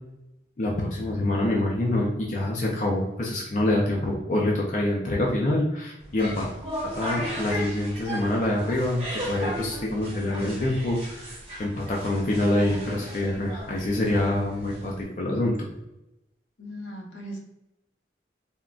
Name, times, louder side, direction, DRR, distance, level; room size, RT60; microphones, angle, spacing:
voice 1, 0.6-6.5 6.9-15.7, left 1 dB, 40° left, -2 dB, 0.4 m, -26 dB
sound 1, 6.0-15.0, equal, 35° right, 1.0 m, -36 dB
voice 2, 16.6-17.4, equal, 80° left, 0 dB, 0.7 m, -38 dB
3.6 x 2.1 x 2.3 m, 0.90 s
head